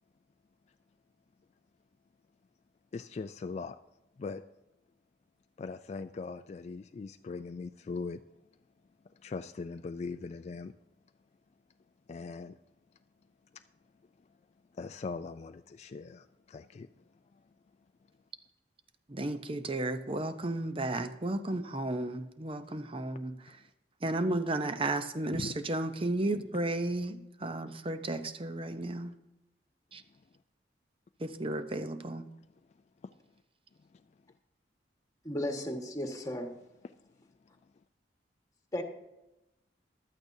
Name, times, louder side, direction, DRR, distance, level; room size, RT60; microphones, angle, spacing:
voice 1, 2.9-3.8 4.2-4.4 5.6-8.2 9.0-10.7 12.1-12.6 13.5-13.6 14.2-14.3 14.7-17.0 17.3-17.4 23.5-23.6 25.3-25.6 30.1-30.2 33.0-33.1 33.9-34.0 36.8-36.9, left 4 dB, 40° left, 8 dB, 0.3 m, -40 dB
voice 2, 19.1-23.4 24.0-29.1 29.9-30.0 31.2-32.2, right 2 dB, 30° right, 10 dB, 0.7 m, -33 dB
voice 3, 35.2-36.5 38.7-38.8, left 1 dB, 20° left, 3 dB, 1.5 m, -34 dB
15.0 x 12.0 x 2.7 m, 0.92 s
head